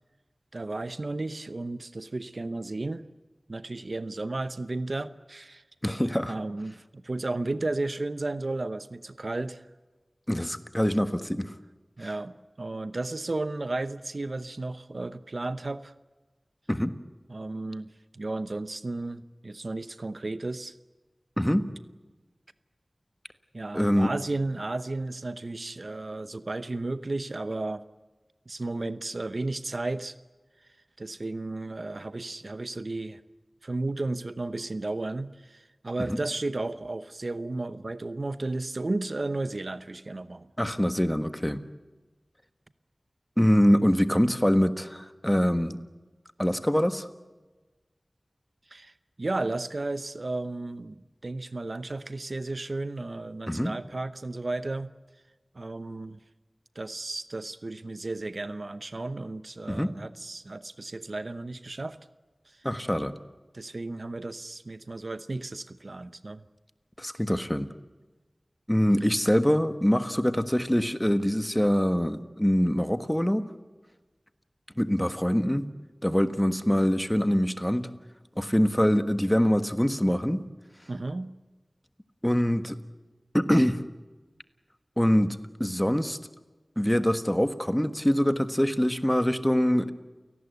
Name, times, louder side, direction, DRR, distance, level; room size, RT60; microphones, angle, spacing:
voice 1, 0.5-3.1 3.5-5.6 6.3-9.7 12.0-15.9 17.3-20.7 23.5-27.8 28.5-30.1 31.0-33.2 33.6-40.5 48.7-48.9 49.2-54.9 55.5-56.2 56.7-62.0 62.6-62.7 63.5-66.4 80.9-81.3, right 2 dB, 60° right, 13 dB, 0.9 m, -33 dB
voice 2, 5.8-6.3 10.3-11.5 16.7-17.0 21.4-21.7 23.7-24.1 36.0-36.2 40.6-41.6 43.4-45.8 46.4-47.1 53.5-53.8 59.7-60.0 62.6-63.1 67.0-67.7 68.7-73.5 74.8-75.7 76.0-77.9 78.4-80.5 82.2-82.8 83.3-83.8 85.0-86.2 86.8-89.9, equal, 10° left, 11 dB, 1.5 m, -24 dB
29.5 x 18.5 x 8.2 m, 1.2 s
wide cardioid pair, 60°, 0 cm